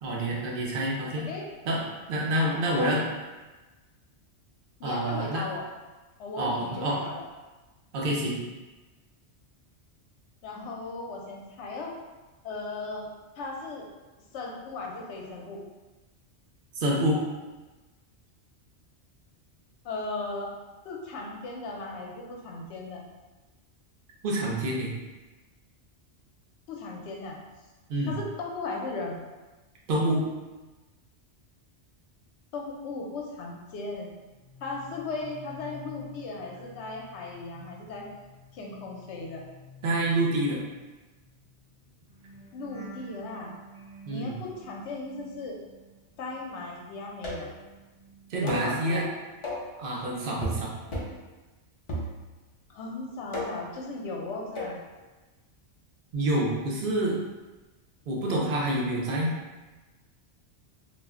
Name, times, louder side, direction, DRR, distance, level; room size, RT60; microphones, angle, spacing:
voice 1, 0.0-1.3 1.6-3.0 4.8-5.4 6.4-7.0 7.9-8.4 16.7-17.2 24.2-24.9 27.9-28.1 29.9-30.2 39.8-40.6 44.1-44.4 48.3-49.1 49.8-50.7 56.1-57.2 58.1-59.3, right 1 dB, 55° right, -3 dB, 0.7 m, -27 dB
voice 2, 2.4-3.0 4.8-5.6 6.2-7.2 10.4-12.0 12.4-13.1 13.4-13.9 14.3-15.6 19.8-20.5 20.8-23.1 26.7-27.4 28.1-29.2 32.5-34.1 34.6-38.1 38.5-39.4 42.5-43.5 44.1-45.6 46.2-47.5 48.3-49.1 52.7-54.8, left 3 dB, 75° left, -1 dB, 0.9 m, -37 dB
sound 1, 34.2-46.5 46.8-48.8 49.1-49.5, left 1 dB, 20° right, 0.9 m, -51 dB
sound 2, 47.2-47.6 48.5-48.7 49.4-49.7 50.4-50.6 50.9-51.2 51.9-52.5 53.3-53.7 54.5-54.8, left 1 dB, 45° left, 0.4 m, -34 dB
2.4 x 2.1 x 3.5 m, 1.2 s
omnidirectional pair, 1.2 m